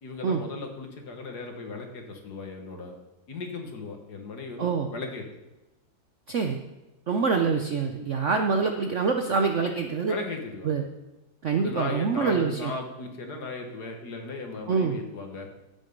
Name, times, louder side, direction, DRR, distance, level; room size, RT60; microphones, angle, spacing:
voice 1, 0.0-3.0 3.3-5.3 10.1-10.7 11.6-15.5, left 3 dB, 55° left, 3 dB, 2.0 m, -37 dB
voice 2, 6.3-6.6 7.1-10.1 10.6-10.9 11.4-12.7 14.7-15.0, right 5 dB, 60° right, 4 dB, 0.8 m, -25 dB
15.5 x 6.3 x 5.3 m, 1.0 s
omnidirectional pair, 2.1 m